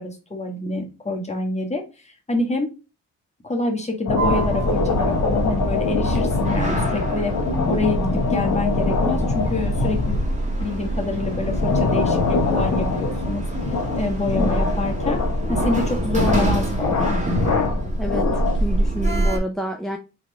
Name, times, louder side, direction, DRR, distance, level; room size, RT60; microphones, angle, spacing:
voice 1, 0.0-2.7 3.4-7.3 7.7-10.2 10.6-13.4 14.0-15.2 15.5-17.2, left 2 dB, 25° left, 2 dB, 1.4 m, -27 dB
sound 1, 4.1-18.8, left 4 dB, 80° left, 1.2 m, -24 dB
Sliding door, 4.2-19.4, right 1 dB, 25° right, 1.7 m, -25 dB
voice 2, 18.0-20.0, right 1 dB, ahead, 4 dB, 0.6 m, -29 dB
4.1 x 3.3 x 3.3 m, 0.30 s
cardioid pair, 65°, 29 cm